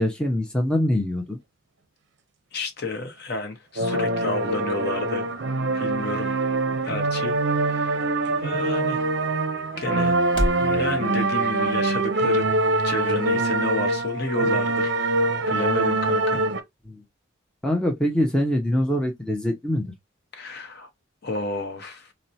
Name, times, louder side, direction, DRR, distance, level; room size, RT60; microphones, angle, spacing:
voice 1, 0.0-1.4 16.9-17.0 17.6-19.9, left 1 dB, 5° left, 0.5 m, -24 dB
voice 2, 2.5-5.3 5.7-6.3 6.8-8.0 8.4-9.1 9.8-10.2 10.6-12.4 12.8-16.4 20.3-20.9 21.2-22.1, left 2 dB, 55° left, 0.7 m, -31 dB
sound 1, 3.8-16.6, right 2 dB, 60° right, 0.5 m, -24 dB
sound 2, 4.5-10.7, equal, 25° left, 0.8 m, -36 dB
4.1 x 2.1 x 2.7 m
head